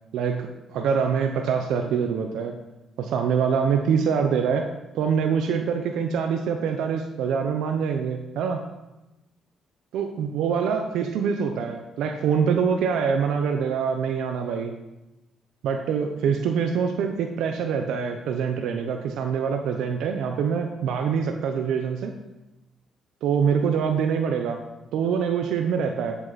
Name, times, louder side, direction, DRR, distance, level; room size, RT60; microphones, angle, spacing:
voice 1, 0.1-2.5 3.0-4.7 4.9-8.6 9.9-14.7 15.6-22.1 23.2-24.6 24.9-26.2, right 6 dB, 85° right, 4 dB, 0.9 m, -25 dB
12.5 x 8.1 x 4.2 m, 1.0 s
cardioid pair, 90°, 0 cm